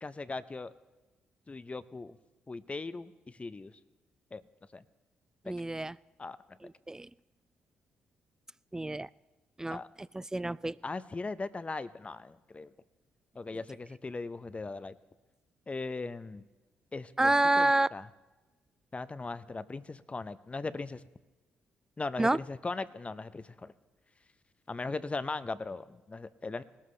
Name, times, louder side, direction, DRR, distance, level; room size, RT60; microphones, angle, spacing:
voice 1, 0.0-0.7 1.5-2.1 2.5-3.7 4.3-4.4 4.7-4.8 6.2-6.4 9.7-9.9 10.8-12.7 13.4-14.9 15.7-16.4 16.9-17.3 17.6-18.1 18.9-21.0 22.0-23.7 24.7-26.6, left 3 dB, 30° left, 14 dB, 0.7 m, -38 dB
voice 2, 5.5-5.9 6.9-7.1 8.7-9.1 9.6-9.8 10.1-10.8 17.2-17.9 22.2-22.4, right 2 dB, 15° right, 21 dB, 0.3 m, -27 dB
19.5 x 13.0 x 3.3 m, 1.2 s
hypercardioid pair, 50°, 4 cm